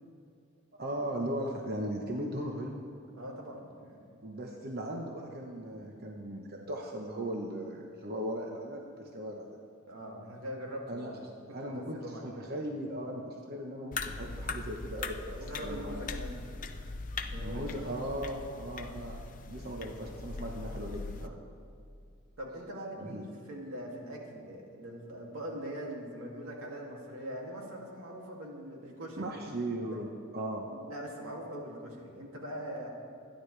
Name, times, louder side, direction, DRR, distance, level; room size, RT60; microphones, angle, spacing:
voice 1, 0.8-2.8 4.2-9.6 10.9-11.1 11.5-15.2 15.6-16.0 17.3-19.2 19.5-21.3 23.0-23.2 29.2-30.7, right 1 dB, 50° right, 0 dB, 1.1 m, -38 dB
voice 2, 3.1-4.0 9.9-11.2 11.6-12.3 15.3-16.4 17.2-17.9 22.4-29.5 29.9-30.0 30.7-32.9, equal, 90° right, -2 dB, 2.6 m, -42 dB
sound 1, 13.9-21.3, left 3 dB, 40° left, 0.6 m, -40 dB
26.5 x 10.0 x 3.4 m, 2.4 s
head